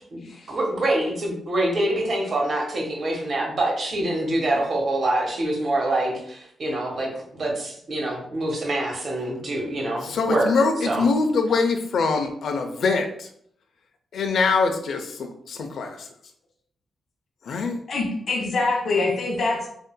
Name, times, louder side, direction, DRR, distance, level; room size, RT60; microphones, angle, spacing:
voice 1, 0.0-10.5 10.9-11.0, right 1 dB, 50° right, -1 dB, 1.3 m, -25 dB
voice 2, 10.0-13.3 14.1-16.0 17.5-17.8, left 4 dB, 70° left, 5 dB, 0.6 m, -23 dB
voice 3, 17.9-19.7, left 3 dB, 50° left, -2 dB, 1.2 m, -24 dB
7.7 x 2.7 x 2.2 m, 0.67 s
wide cardioid pair, 175°, 0 cm